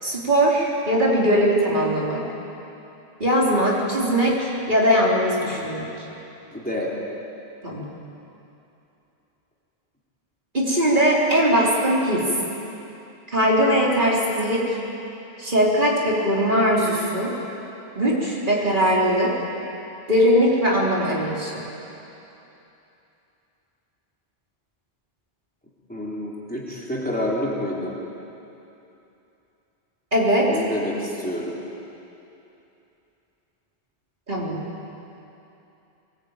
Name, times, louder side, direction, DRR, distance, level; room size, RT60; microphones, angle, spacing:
voice 1, 0.0-2.2 3.2-6.0 7.6-7.9 10.5-12.3 13.3-14.7 15.4-17.4 18.0-19.4 20.1-21.6 30.1-30.5 34.3-34.6, equal, 50° right, -4 dB, 4.2 m, -20 dB
voice 2, 6.5-6.9 25.9-27.9 30.5-31.5, left 1 dB, 10° left, -5 dB, 3.6 m, -28 dB
23.0 x 20.0 x 9.0 m, 2.9 s
omnidirectional pair, 1.1 m